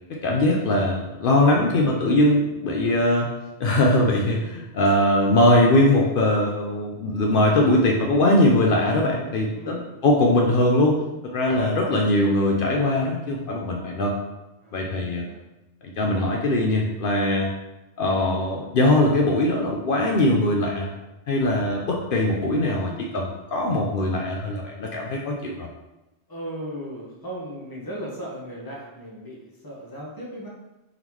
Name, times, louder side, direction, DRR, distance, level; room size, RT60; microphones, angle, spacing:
voice 1, 0.1-3.3 3.6-14.1 14.7-15.2 15.8-17.5 18.0-20.9 21.3-25.7, left 1 dB, 60° left, -1 dB, 0.7 m, -21 dB
voice 2, 9.5-9.8 11.5-11.9 14.6-15.4 26.3-30.5, equal, 20° left, -4 dB, 0.9 m, -37 dB
3.7 x 3.6 x 3.0 m, 1.0 s
omnidirectional pair, 1.1 m